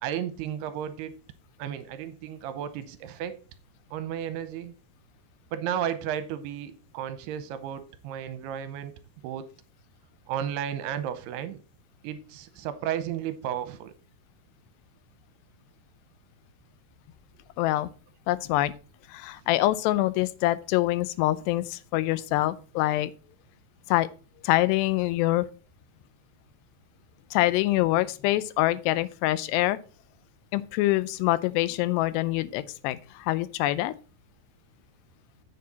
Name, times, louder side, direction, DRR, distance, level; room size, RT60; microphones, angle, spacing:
voice 1, 0.0-1.1 1.6-3.4 3.9-4.7 5.5-8.9 9.2-9.5 10.3-11.6 12.0-13.9, right 10 dB, 80° right, 2.7 m, -33 dB
voice 2, 17.6-17.9 18.3-18.7 19.1-23.1 23.9-24.1 24.4-25.5 27.3-29.8 30.5-33.9, left 16 dB, 85° left, 2.7 m, -25 dB
9.6 x 7.6 x 4.2 m
omnidirectional pair, 4.8 m